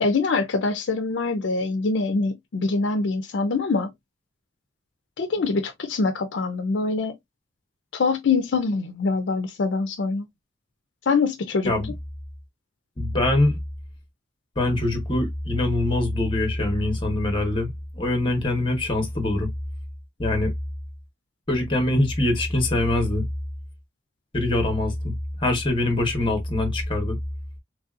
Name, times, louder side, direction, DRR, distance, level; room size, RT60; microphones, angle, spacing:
voice 1, 0.0-3.9 5.2-7.2 7.9-10.3 11.1-11.7, left 4 dB, 70° left, 0.5 m, -24 dB
voice 2, 13.0-13.6 14.6-19.5 20.2-20.5 21.5-23.3 24.3-25.1 25.4-27.2, left 1 dB, 25° left, 1.1 m, -23 dB
3.2 x 2.7 x 2.4 m
head